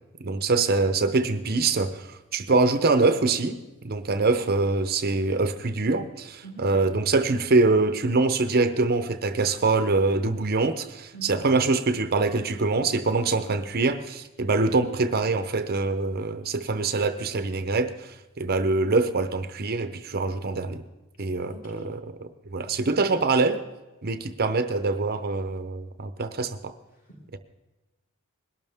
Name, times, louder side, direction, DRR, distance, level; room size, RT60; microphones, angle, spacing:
voice 1, 0.2-20.8 21.2-23.6 24.0-26.7 27.3-27.4, right 3 dB, 45° right, 10 dB, 0.7 m, -24 dB
voice 2, 21.5-21.9 27.1-27.4, right 3 dB, 40° left, -2 dB, 4.8 m, -43 dB
21.0 x 12.5 x 3.6 m, 1.1 s
head